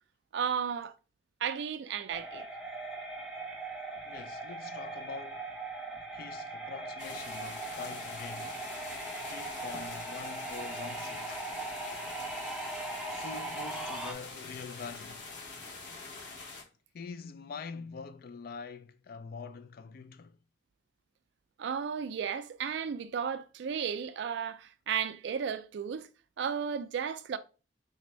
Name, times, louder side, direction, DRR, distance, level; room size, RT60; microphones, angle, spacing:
voice 1, 0.3-0.9 1.4-2.5 21.6-26.1 26.4-27.4, right 7 dB, 65° right, 0.3 m, -34 dB
sound 1, 2.1-14.1, right 2 dB, 5° right, 0.5 m, -40 dB
voice 2, 4.0-5.6 6.1-8.6 9.2-11.5 13.1-15.3 16.9-20.4, left 5 dB, 50° left, 0.3 m, -44 dB
sound 2, 7.0-16.6, left 4 dB, 70° left, 1.0 m, -45 dB
4.2 x 2.6 x 3.0 m
head